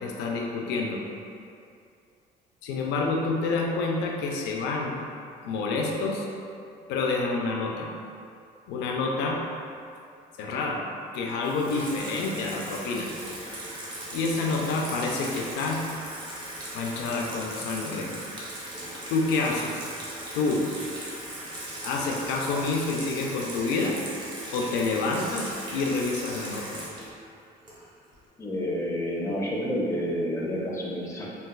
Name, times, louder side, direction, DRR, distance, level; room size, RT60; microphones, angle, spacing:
voice 1, 0.0-1.0 2.6-5.0 5.4-6.3 6.9-7.9 8.7-9.4 10.4-10.8 11.1-13.1 14.1-15.8 16.7-18.1 19.1-19.8 20.3-20.6 21.8-24.0 24.5-26.8, left 3 dB, 90° left, 0 dB, 0.4 m, -28 dB
Water tap faucet / Sink (filling or washing), 11.4-28.1, right 1 dB, 25° right, 0.7 m, -38 dB
voice 2, 28.4-31.3, equal, 15° left, -3 dB, 0.5 m, -29 dB
4.0 x 2.2 x 2.2 m, 2.5 s
cardioid pair, 110°, 17 cm